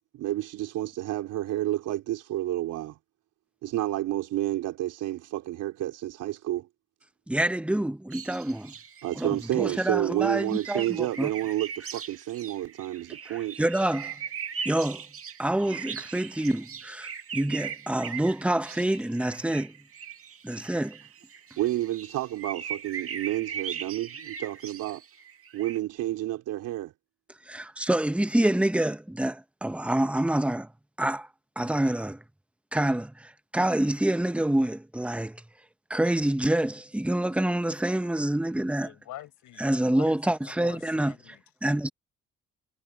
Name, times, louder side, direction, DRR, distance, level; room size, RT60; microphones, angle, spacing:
voice 1, 0.1-3.0 3.6-6.7 9.0-13.6 21.6-25.0 25.5-26.9, right 15 dB, 90° right, 3.8 m, -30 dB
voice 2, 7.3-8.7 9.1-11.3 13.3-14.2 14.6-15.0 15.4-19.7 20.4-21.0 27.5-30.7 31.0-31.3 31.6-32.2 32.7-35.4 35.9-38.9 39.6-41.1 41.6-41.9, right 1 dB, 5° right, 1.1 m, -27 dB
sound 1, 8.1-25.8, right 7 dB, 45° right, 2.0 m, -40 dB
voice 3, 38.8-40.1 40.4-41.4, left 14 dB, 85° left, 6.2 m, -45 dB
cardioid pair, 90°, 30 cm